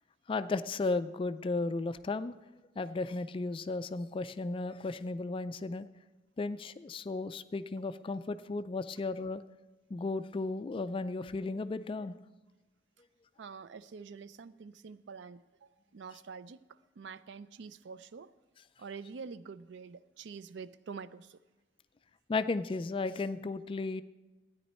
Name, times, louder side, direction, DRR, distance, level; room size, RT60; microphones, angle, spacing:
voice 1, 0.3-2.3 2.8-5.9 6.4-9.4 9.9-12.2 22.3-24.0, left 3 dB, 30° left, 0.3 m, -34 dB
voice 2, 13.4-18.3 18.8-21.4, right 5 dB, 70° right, 0.4 m, -47 dB
13.0 x 9.6 x 4.3 m
head